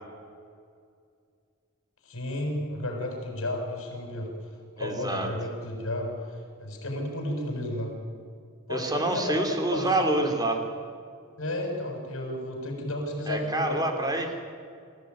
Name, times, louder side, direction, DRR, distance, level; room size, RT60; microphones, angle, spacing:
voice 1, 2.0-4.3 4.8-7.9 8.7-9.4 9.7-10.1 11.4-13.8, left 1 dB, 65° left, 2 dB, 7.2 m, -32 dB
voice 2, 4.8-5.3 8.7-10.6 13.3-14.3, right 2 dB, 20° right, 4 dB, 3.1 m, -27 dB
28.0 x 15.5 x 9.7 m, 2.2 s
head